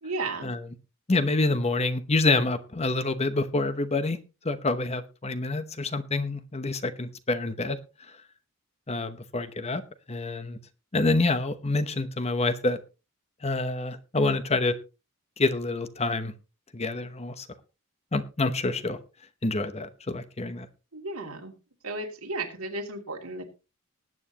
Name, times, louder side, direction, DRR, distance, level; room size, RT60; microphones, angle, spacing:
voice 1, 0.0-0.5 20.9-21.5 21.8-23.5, right 2 dB, 90° right, 2 dB, 2.9 m, -34 dB
voice 2, 1.1-4.2 4.4-7.8 8.9-9.8 10.1-10.6 10.9-12.8 13.4-14.7 15.4-16.3 16.7-17.5 18.1-19.0 19.4-20.7, left 2 dB, 30° left, 11 dB, 1.0 m, -27 dB
19.5 x 9.0 x 3.0 m, 0.31 s
head